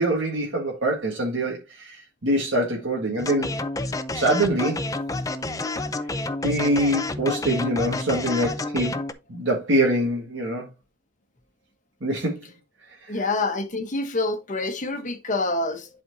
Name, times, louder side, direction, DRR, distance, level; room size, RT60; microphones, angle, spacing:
voice 1, 0.0-3.5 4.1-4.8 6.4-9.0 9.3-10.7 12.0-12.3 13.0-13.3, right 1 dB, 75° right, 1.7 m, -24 dB
sound 1, 3.2-9.1, left 2 dB, 20° left, 0.5 m, -29 dB
voice 2, 13.1-15.9, left 2 dB, 45° left, 1.0 m, -27 dB
11.0 x 4.3 x 2.7 m
head